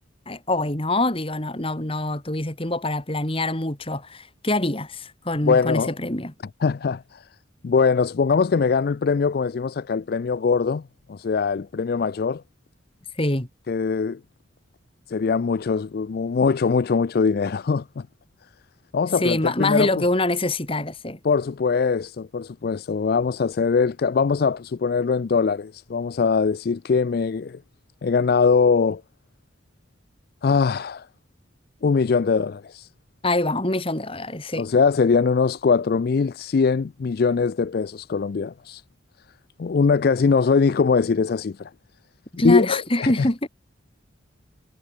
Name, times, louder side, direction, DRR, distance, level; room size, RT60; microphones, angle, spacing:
voice 1, 0.3-6.3 13.2-13.5 19.2-21.2 33.2-34.6 42.4-43.5, left 2 dB, 30° left, 2.4 m, -24 dB
voice 2, 5.5-5.9 6.6-7.3 7.6-10.8 11.1-12.4 13.7-14.2 15.1-18.1 18.9-20.0 21.2-27.6 28.0-29.0 30.4-31.1 31.8-32.9 34.6-38.8 39.6-41.7 42.4-43.3, left 5 dB, 50° left, 0.4 m, -22 dB
head